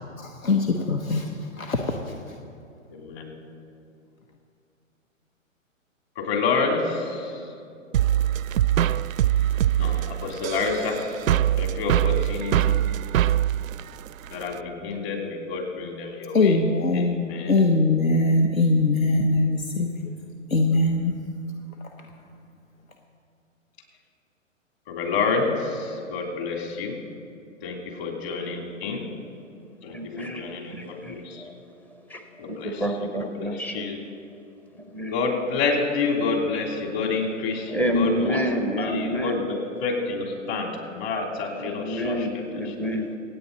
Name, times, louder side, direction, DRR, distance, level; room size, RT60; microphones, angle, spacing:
voice 1, 0.2-2.4 16.3-20.1 20.5-21.2 21.8-22.1, left 2 dB, 85° left, 3 dB, 1.2 m, -22 dB
voice 2, 2.9-3.4 6.2-7.5 9.8-11.0 11.5-12.8 14.3-16.6 16.9-17.5 24.9-27.0 27.6-29.0 29.8-31.5 32.4-34.0 35.1-38.4 38.8-42.3 42.6-42.7, left 4 dB, 50° left, 1 dB, 3.3 m, -28 dB
sound 1, 7.9-14.6, right 12 dB, 80° right, 0.5 m, -23 dB
voice 3, 29.9-31.5 32.1-32.2 32.5-33.9 34.9-35.1 37.7-39.5 41.6-43.1, equal, 5° left, 6 dB, 0.5 m, -28 dB
26.5 x 8.9 x 4.1 m, 2.6 s
hypercardioid pair, 125°, 40 cm